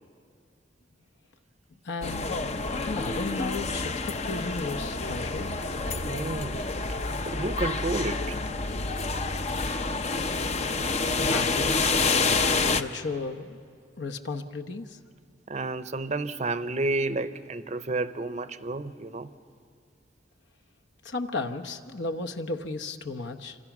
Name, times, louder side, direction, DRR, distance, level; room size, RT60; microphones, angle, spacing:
voice 1, 1.8-2.4 2.8-5.6 11.2-12.1 12.7-13.6 14.0-15.0 21.0-23.6, left 3 dB, 65° left, 5 dB, 1.1 m, -34 dB
sound 1, 2.0-12.8, left 3 dB, 35° left, 0.6 m, -28 dB
voice 2, 6.0-7.0 7.3-8.4 15.5-19.3, right 2 dB, 35° right, 12 dB, 0.7 m, -31 dB
27.5 x 26.0 x 6.1 m, 2.2 s
head